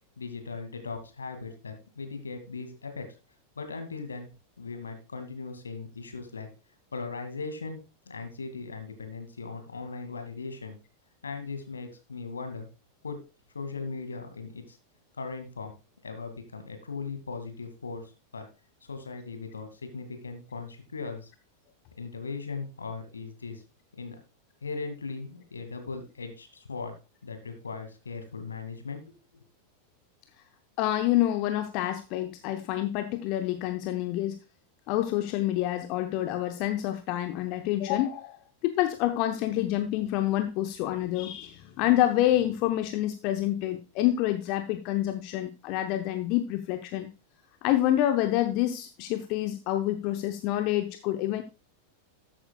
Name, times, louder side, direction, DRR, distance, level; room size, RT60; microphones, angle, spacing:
voice 1, 0.2-3.1 3.6-4.3 4.6-6.5 6.9-7.8 8.1-10.8 11.2-12.7 13.0-13.2 13.5-14.8 15.2-15.7 16.0-18.5 18.9-21.3 22.0-23.6 24.0-24.2 24.6-26.9 27.2-29.1, left 4 dB, 75° left, 7 dB, 2.2 m, -38 dB
voice 2, 30.8-34.4 34.9-38.4 38.6-47.1 47.6-51.4, left 13 dB, 45° left, 8 dB, 0.7 m, -27 dB
13.5 x 8.8 x 2.3 m, 0.29 s
figure-of-eight pair, 90°, 0 cm